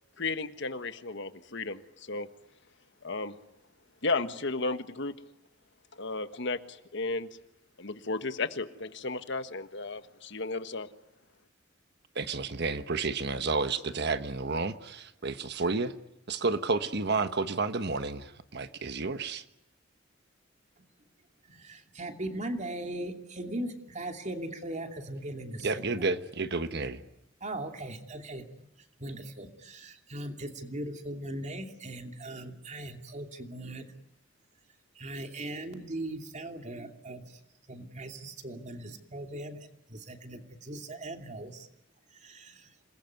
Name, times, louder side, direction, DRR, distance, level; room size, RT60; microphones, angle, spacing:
voice 1, 0.2-2.3 3.0-3.4 4.0-5.1 6.0-7.3 7.8-10.9, left 3 dB, 65° left, 10 dB, 1.5 m, -34 dB
voice 2, 12.1-15.9 16.3-19.4 25.6-27.0, right 3 dB, 60° right, 10 dB, 1.3 m, -31 dB
voice 3, 20.8-21.1 21.4-26.0 27.4-28.7 29.0-33.9 34.9-37.4 37.7-41.7 42.1-42.7, right 1 dB, 40° right, 5 dB, 2.8 m, -39 dB
27.5 x 21.0 x 9.5 m, 0.86 s
head